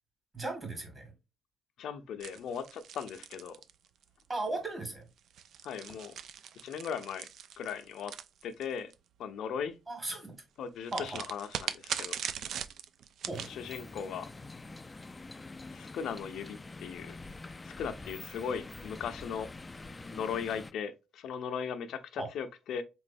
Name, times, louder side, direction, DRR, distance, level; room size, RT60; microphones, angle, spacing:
voice 1, 0.3-1.1 4.3-5.1 9.9-10.3 10.9-11.2 13.3-13.5 22.2-22.3, right 2 dB, 30° right, 1.8 m, -36 dB
voice 2, 1.8-3.6 5.6-6.2 6.6-7.3 7.6-8.1 8.4-8.9 9.2-9.7 10.6-12.2 13.4-14.3 15.7-17.2 17.6-19.5 20.1-22.8, left 7 dB, 75° left, 0.5 m, -38 dB
sound 1, 2.2-4.2 5.2-8.9 10.9-13.5, right 8 dB, 70° right, 0.3 m, -40 dB
sound 2, 13.3-20.7, left 3 dB, 20° left, 0.3 m, -46 dB
3.8 x 3.1 x 2.5 m
cardioid pair, 90°, 0 cm